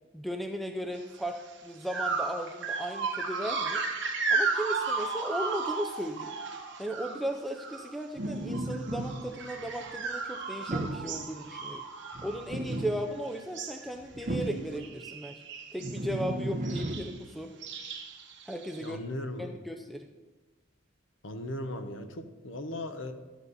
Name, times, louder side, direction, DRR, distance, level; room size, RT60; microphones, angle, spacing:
voice 1, 0.1-3.8 4.3-6.3 6.8-11.8 12.2-15.4 15.7-17.5 18.5-19.0 19.4-20.1, equal, ahead, 4 dB, 0.5 m, -36 dB
sound 1, 1.2-1.4 1.9-8.0 8.3-13.1 13.3-13.9 14.2-14.5 14.7-16.0 16.6-17.1 17.6-18.9, right 4 dB, 65° right, 1.5 m, -34 dB
sound 2, 8.2-10.0 10.7-11.2 12.1-13.2 13.9-14.8 15.8-17.0, right 1 dB, 40° right, 1.0 m, -34 dB
voice 2, 18.8-19.5 21.2-23.1, left 1 dB, 75° left, 7 dB, 1.1 m, -37 dB
12.5 x 8.2 x 4.1 m, 1.2 s
head